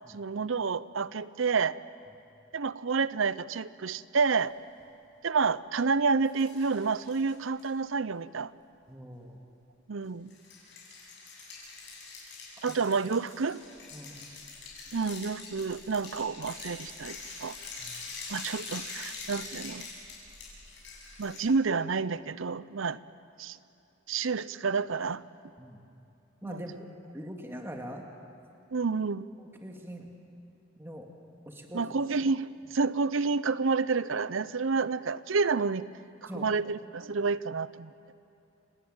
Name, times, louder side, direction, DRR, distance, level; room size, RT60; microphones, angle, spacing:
voice 1, 0.1-1.8 2.5-4.5 5.2-8.5 9.9-10.3 12.6-13.6 14.9-17.6 18.3-19.9 21.2-23.0 23.4-23.6 24.1-25.2 26.4-26.6 28.7-29.3 31.7-35.9 36.2-37.9, right 4 dB, 75° right, 17 dB, 0.7 m, -29 dB
sound 1, 6.3-7.7 10.3-21.4, left 4 dB, 60° left, 7.9 m, -44 dB
voice 2, 8.9-9.4 12.7-12.8 13.9-14.3 17.8-18.0 25.6-25.8 26.4-26.7 27.1-28.1 29.4-30.1 30.8-31.1 31.5-31.9 36.3-36.5, equal, 10° right, 1 dB, 2.1 m, -42 dB
30.0 x 19.0 x 8.8 m, 2.7 s
head